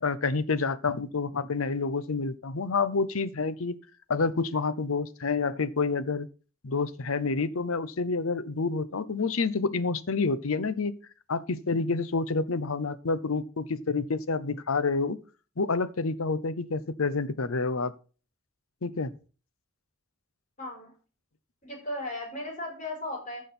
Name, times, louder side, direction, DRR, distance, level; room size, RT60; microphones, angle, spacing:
voice 1, 0.0-3.8 4.1-6.3 6.6-10.9 11.3-15.2 15.6-17.9 18.8-19.1, left 4 dB, 70° left, 0.7 m, -28 dB
voice 2, 20.6-20.9 21.6-23.4, left 1 dB, 35° left, 5.4 m, -36 dB
14.5 x 6.2 x 4.3 m
head